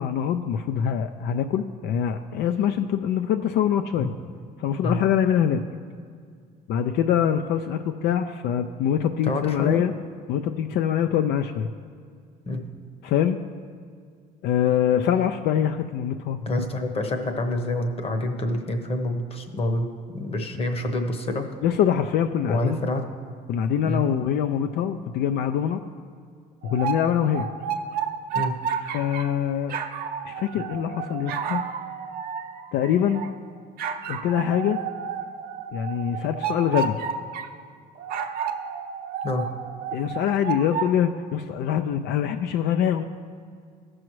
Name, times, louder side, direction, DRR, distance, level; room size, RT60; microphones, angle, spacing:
voice 1, 0.0-4.1 4.6-5.6 6.7-9.9 10.3-11.7 13.0-13.4 14.4-16.4 21.6-22.8 23.5-25.8 26.6-27.5 28.8-29.8 30.3-31.6 32.7-33.2 34.1-34.8 35.7-37.0 39.9-43.0, left 9 dB, 75° left, 8 dB, 0.4 m, -24 dB
voice 2, 9.2-9.8 12.5-12.7 16.4-19.9 20.1-21.5 22.5-23.0 23.8-24.0 28.3-28.6 39.2-39.5, left 2 dB, 35° left, 5 dB, 1.0 m, -27 dB
sound 1, 26.6-29.3 29.7-33.3 33.8-37.5 38.0-40.9, right 6 dB, 65° right, 0.6 m, -31 dB
14.5 x 6.2 x 3.1 m, 2.1 s
cardioid pair, 110°, 17 cm